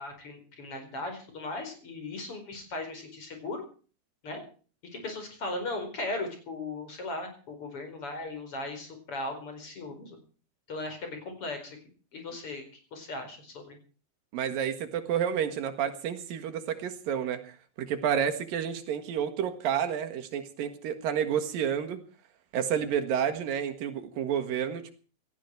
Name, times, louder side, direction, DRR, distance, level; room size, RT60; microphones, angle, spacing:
voice 1, 0.0-3.6 4.2-4.4 4.9-10.2 10.7-11.8 12.1-13.8, left 2 dB, 40° left, 5 dB, 5.4 m, -37 dB
voice 2, 14.3-22.0 22.5-24.9, right 8 dB, 75° right, 7 dB, 3.4 m, -30 dB
17.5 x 15.0 x 4.6 m, 0.39 s
omnidirectional pair, 4.1 m